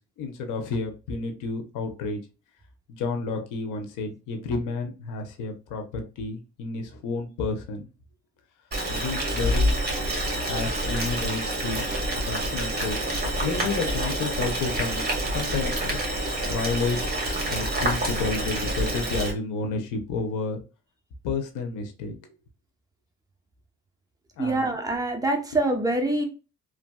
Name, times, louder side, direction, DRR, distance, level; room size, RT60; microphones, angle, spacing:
voice 1, 0.0-2.2 2.9-7.8 8.9-9.7 10.5-11.9 12.2-13.1 13.4-17.1 17.4-20.6 21.2-22.1 24.4-24.7, left 3 dB, 90° left, 5 dB, 0.8 m, -31 dB
Boiling, 8.7-19.3, right 1 dB, 30° right, 1.4 m, -27 dB
voice 2, 24.4-26.2, right 2 dB, 10° right, 2 dB, 0.8 m, -25 dB
3.1 x 2.5 x 2.2 m, 0.31 s
cardioid pair, 90°, 30 cm